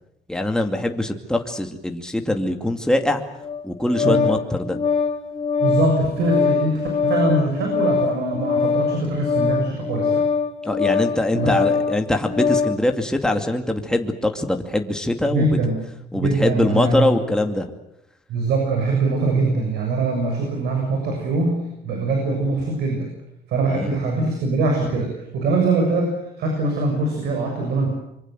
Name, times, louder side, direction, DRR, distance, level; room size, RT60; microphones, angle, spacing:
voice 1, 0.3-3.2 3.6-4.8 10.6-15.6 16.1-17.7 23.7-24.0, left 1 dB, 5° left, 4 dB, 2.5 m, -23 dB
Organ, 3.4-12.8, left 5 dB, 30° left, 3.7 m, -22 dB
voice 2, 5.6-10.3 11.3-11.5 15.3-15.8 16.1-17.1 18.3-23.1 23.5-27.9, right 2 dB, 75° right, 2 dB, 7.1 m, -22 dB
25.5 x 24.0 x 7.8 m, 0.83 s
cardioid pair, 110°, 17 cm